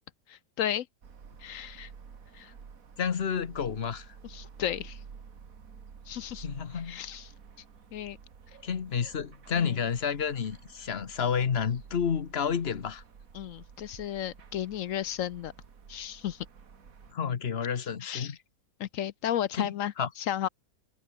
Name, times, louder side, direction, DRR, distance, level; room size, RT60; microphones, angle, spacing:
voice 1, 0.3-0.9 1.4-1.9 2.3-2.5 4.2-5.0 6.1-6.5 6.7-7.3 7.9-8.2 9.5-9.8 13.3-15.5 15.9-16.5 18.0-18.4 18.8-20.5, left 11 dB, 65° left, 0.9 m, -34 dB
sound 1, 1.0-17.1, right 6 dB, 60° right, 2.1 m, -51 dB
voice 2, 3.0-4.1 6.4-7.0 8.6-13.0 17.1-18.4 19.6-20.1, left 7 dB, 45° left, 1.3 m, -30 dB
omnidirectional pair, 1.6 m